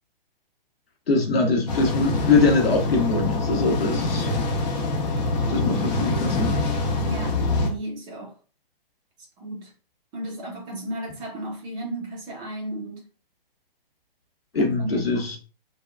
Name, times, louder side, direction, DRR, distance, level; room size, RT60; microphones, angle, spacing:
voice 1, 1.1-4.3 5.5-6.7 14.5-15.4, left 3 dB, 85° left, 1.0 m, -22 dB
sound 1, 1.7-7.7, left 2 dB, 45° left, 0.8 m, -25 dB
voice 2, 7.0-8.3 9.4-9.7 10.1-13.0 14.5-15.2, right 1 dB, 15° right, 0.5 m, -34 dB
3.3 x 2.2 x 2.2 m
hypercardioid pair, 135°, 30 cm